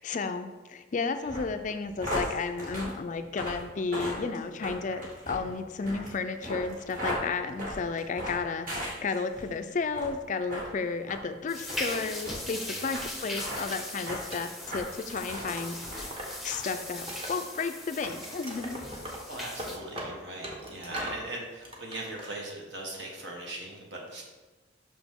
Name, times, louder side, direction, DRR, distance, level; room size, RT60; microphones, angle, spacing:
voice 1, 0.0-16.1 16.4-18.9, left 4 dB, 40° left, 9 dB, 0.4 m, -33 dB
sound 1, 1.2-9.5 9.9-10.2 10.5-10.7 11.1-11.2 11.7-11.8 12.2-12.4 12.9-13.0 13.3-13.6 14.1-14.2 14.6-15.5 15.8-16.2 16.5-16.6, left 1 dB, 45° right, 2.0 m, -36 dB
sound 2, 11.5-19.8, left 1 dB, ahead, 0.7 m, -39 dB
voice 2, 12.6-13.0 19.3-24.2, right 1 dB, 65° right, -1 dB, 1.4 m, -40 dB
Wood, 13.7-16.4 16.7-17.7 18.0-21.2 21.6-22.3, right 1 dB, 30° right, 1.1 m, -41 dB
6.1 x 6.0 x 3.6 m, 1.2 s
head